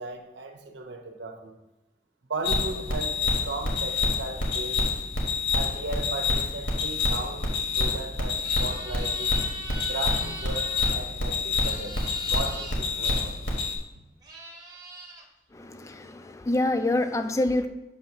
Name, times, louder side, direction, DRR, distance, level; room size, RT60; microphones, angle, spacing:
voice 1, 0.0-1.5 2.3-4.8 5.5-9.3 9.9-12.0 12.3-13.4, right 3 dB, 85° right, 4 dB, 0.8 m, -36 dB
sound 1, 2.4-13.8, left 3 dB, 80° left, 1.5 m, -27 dB
sound 2, 8.4-10.9 11.5-12.8 13.8-13.9 14.2-15.2, right 3 dB, 20° right, 0.8 m, -41 dB
voice 2, 15.5-17.7, left 2 dB, 15° left, 8 dB, 0.3 m, -26 dB
7.0 x 2.8 x 5.8 m, 1.0 s
head